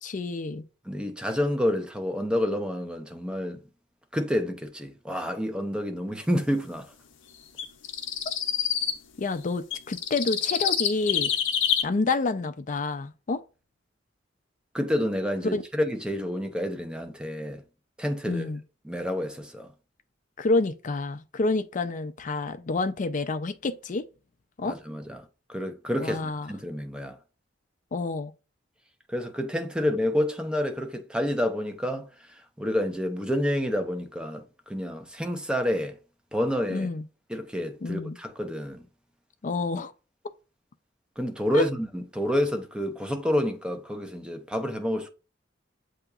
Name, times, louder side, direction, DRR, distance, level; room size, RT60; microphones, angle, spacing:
voice 1, 0.0-0.6 9.2-11.3 11.8-13.4 15.5-15.6 18.3-18.6 20.4-24.0 24.6-24.8 26.0-26.5 27.9-28.3 36.7-37.0 37.8-38.2 39.4-39.9 41.5-41.6, left 3 dB, 40° left, 0.5 m, -28 dB
voice 2, 0.9-3.6 4.1-6.9 14.7-17.6 18.0-18.5 18.8-19.7 24.6-27.2 29.1-32.1 32.6-34.4 34.7-36.0 36.3-36.9 37.3-38.8 41.2-45.1, left 1 dB, 5° right, 0.6 m, -29 dB
sound 1, 7.6-9.0 9.7-11.8, left 9 dB, 80° left, 0.7 m, -27 dB
7.8 x 2.8 x 2.4 m
head